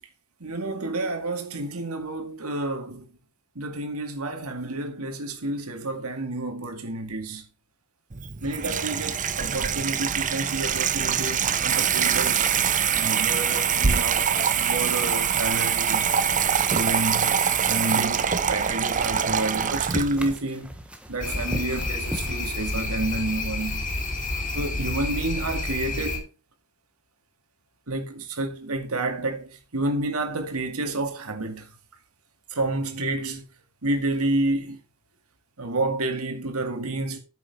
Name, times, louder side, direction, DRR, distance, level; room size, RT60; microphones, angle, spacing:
voice 1, 0.4-3.1 3.6-7.4 8.4-12.5 12.9-16.1 16.7-17.4 17.7-20.7 21.1-23.9 24.5-26.2 27.9-31.7 32.5-33.4 33.8-34.8 35.6-37.2, right 2 dB, 70° right, 2.1 m, -29 dB
Water tap faucet / Sink (filling or washing), 8.1-20.3, right 7 dB, 35° right, 0.7 m, -24 dB
sound 1, 17.8-22.4, equal, 5° right, 1.3 m, -41 dB
sound 2, 21.2-26.2, left 2 dB, 35° left, 2.7 m, -29 dB
9.4 x 7.1 x 4.8 m
head